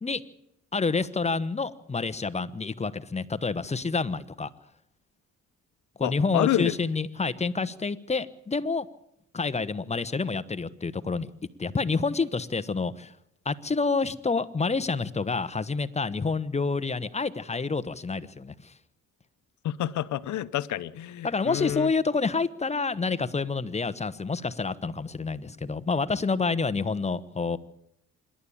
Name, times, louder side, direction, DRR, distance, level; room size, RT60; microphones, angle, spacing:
voice 1, 0.7-4.5 6.0-8.9 9.3-11.3 11.6-13.1 13.4-18.7 21.2-27.6, left 4 dB, 20° left, 1.1 m, -28 dB
voice 2, 6.0-6.7 19.6-21.9, left 13 dB, 70° left, 1.0 m, -29 dB
26.0 x 11.5 x 8.6 m
cardioid pair, 90°, 30 cm